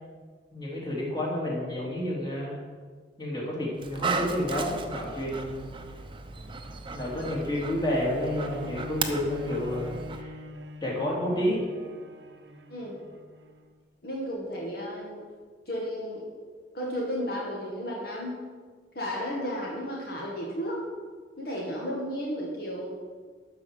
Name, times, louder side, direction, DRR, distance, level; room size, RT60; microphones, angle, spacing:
voice 1, 0.5-2.6 3.2-5.7 6.9-10.3 10.8-11.6, left 1 dB, 25° left, -4 dB, 3.0 m, -30 dB
Dog, 3.8-10.2, right 4 dB, 30° right, 0.8 m, -36 dB
Bowed string instrument, 8.1-13.8 14.4-14.5, equal, 70° right, 0.8 m, -44 dB
voice 2, 14.0-15.3 15.7-16.2 16.7-18.3 19.0-20.8 21.4-22.9, equal, 60° left, -3 dB, 1.8 m, -33 dB
12.5 x 4.9 x 7.6 m, 1.6 s
head